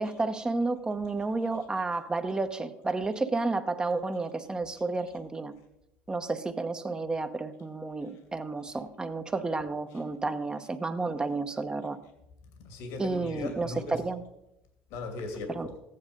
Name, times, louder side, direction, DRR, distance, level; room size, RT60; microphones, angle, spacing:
voice 1, 0.0-5.5 6.1-12.0 13.0-14.2 15.6-15.7, right 3 dB, 15° right, 9 dB, 1.0 m, -31 dB
voice 2, 12.6-14.0 14.9-15.8, left 3 dB, 70° left, 4 dB, 2.5 m, -38 dB
14.5 x 9.7 x 5.2 m, 0.88 s
supercardioid pair, 100°, 5 cm